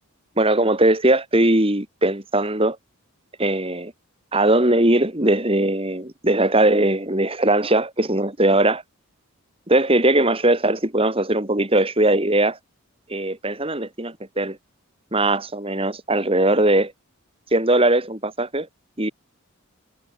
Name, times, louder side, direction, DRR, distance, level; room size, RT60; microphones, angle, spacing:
voice 1, 0.4-2.8 3.4-3.9 4.3-8.8 9.7-12.6 13.1-14.6 15.1-16.9 17.5-18.7 19.0-19.1, right 1 dB, 25° right, 2.7 m, -20 dB
head